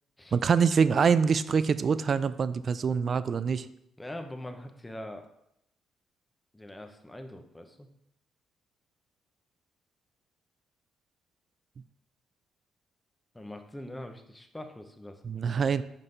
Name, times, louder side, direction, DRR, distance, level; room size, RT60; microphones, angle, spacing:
voice 1, 0.3-3.7 15.2-15.8, right 6 dB, 45° right, 15 dB, 0.3 m, -25 dB
voice 2, 4.0-5.3 6.5-7.9 13.3-15.2, left 1 dB, 10° left, 6 dB, 0.8 m, -42 dB
5.6 x 5.3 x 4.0 m, 0.78 s
cardioid pair, 90°, 0 cm